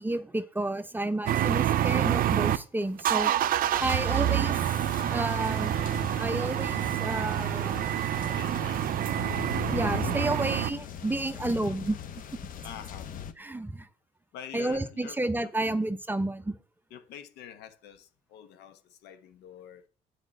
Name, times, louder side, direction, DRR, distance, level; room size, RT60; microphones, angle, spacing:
voice 1, 0.0-3.3 3.8-4.6 5.0-7.9 9.7-12.0 13.4-13.9 14.5-16.6, right 2 dB, 10° right, 0.7 m, -31 dB
sound 1, 1.3-2.6 3.0-10.7, right 12 dB, 55° right, 0.6 m, -27 dB
voice 2, 3.7-4.0 8.4-8.9 12.6-13.1 14.3-15.8 16.9-19.8, left 9 dB, 80° left, 1.2 m, -46 dB
sound 2, 3.8-13.3, left 8 dB, 55° left, 0.9 m, -40 dB
8.8 x 5.0 x 7.7 m
cardioid pair, 110°, 17 cm